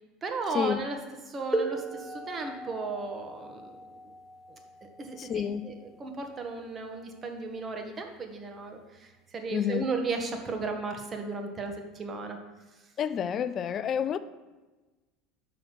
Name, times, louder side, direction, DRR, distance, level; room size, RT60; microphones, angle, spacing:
voice 1, 0.2-1.0 1.3-3.7 4.5-12.4, right 3 dB, 30° right, 1.3 m, -35 dB
sound 1, 1.5-7.0 8.0-8.1 8.9-9.1, right 2 dB, ahead, 1.4 m, -37 dB
voice 2, 5.2-5.7 9.5-9.9 13.0-14.2, left 8 dB, 40° left, 0.4 m, -29 dB
6.1 x 5.7 x 6.5 m
figure-of-eight pair, 70°, 0 cm